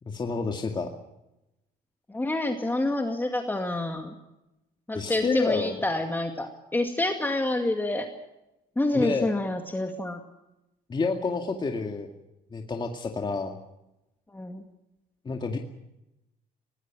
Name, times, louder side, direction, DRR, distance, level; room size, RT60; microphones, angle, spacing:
voice 1, 0.0-0.9 4.9-5.8 8.9-9.4 10.9-12.1 12.5-13.6 15.2-15.6, left 4 dB, 25° left, 3 dB, 2.2 m, -29 dB
voice 2, 2.1-4.1 4.9-8.1 8.8-10.2 14.3-14.6, left 2 dB, 10° left, 4 dB, 2.2 m, -28 dB
23.0 x 19.5 x 6.2 m, 0.92 s
cardioid pair, 110°, 17 cm